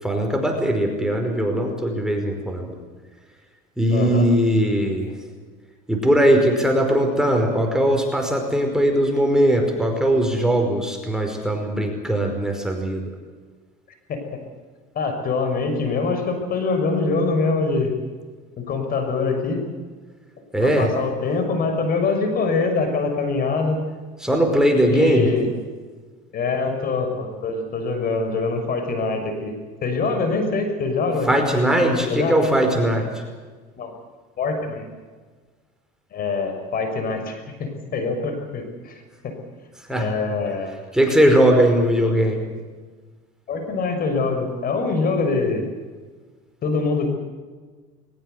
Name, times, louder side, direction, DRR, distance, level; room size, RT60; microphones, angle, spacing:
voice 1, 0.0-2.8 3.8-5.2 5.9-13.2 20.5-20.9 24.2-25.3 31.3-33.2 39.8-40.1 40.9-42.4, right 1 dB, 5° right, 3 dB, 5.2 m, -20 dB
voice 2, 3.9-4.2 14.1-14.2 14.9-17.9 18.6-19.6 20.6-23.8 24.8-25.5 26.3-29.5 29.8-31.3 31.8-32.4 33.8-33.9 34.4-34.9 36.1-39.3 39.9-40.7 43.5-45.7 46.6-47.1, left 4 dB, 45° left, 6 dB, 6.3 m, -24 dB
21.5 x 21.0 x 8.2 m, 1.4 s
supercardioid pair, 105°, 21 cm